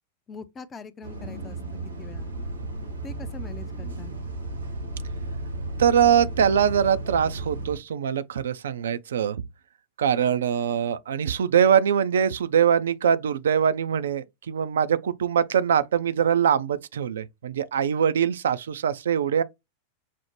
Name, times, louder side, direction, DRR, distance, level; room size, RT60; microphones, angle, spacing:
voice 1, 0.3-1.6 2.0-2.3 3.0-4.1, left 5 dB, 20° left, 0.5 m, -42 dB
Bus, 1.0-7.8, right 2 dB, 80° right, 0.9 m, -34 dB
voice 2, 5.8-9.4 10.0-19.4, right 8 dB, 65° right, 0.3 m, -23 dB
5.8 x 2.0 x 3.1 m
figure-of-eight pair, 90°, 0 cm